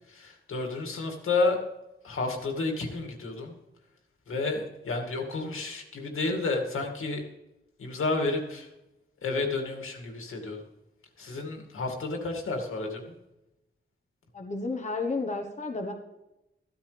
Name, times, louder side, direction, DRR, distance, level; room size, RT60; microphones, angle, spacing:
voice 1, 0.1-1.6 2.0-3.6 4.3-7.2 7.8-8.7 9.2-10.6 11.2-13.1, left 3 dB, 85° left, 2 dB, 2.4 m, -31 dB
voice 2, 14.3-15.9, left 3 dB, 35° left, 3 dB, 1.2 m, -32 dB
15.0 x 13.0 x 3.4 m, 0.93 s
wide cardioid pair, 160°, 21 cm